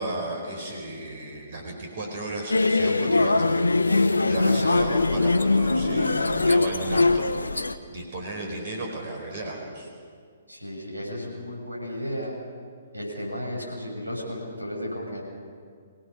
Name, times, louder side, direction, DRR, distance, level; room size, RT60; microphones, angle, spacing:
voice 1, 0.0-9.9, right 2 dB, 50° right, 1 dB, 4.7 m, -34 dB
sound 1, 2.5-7.7, left 3 dB, 85° left, 0.9 m, -22 dB
voice 2, 10.5-12.3 12.9-15.2, equal, 90° right, -1 dB, 6.8 m, -34 dB
26.0 x 17.0 x 6.4 m, 2.1 s
figure-of-eight pair, 125°, 0 cm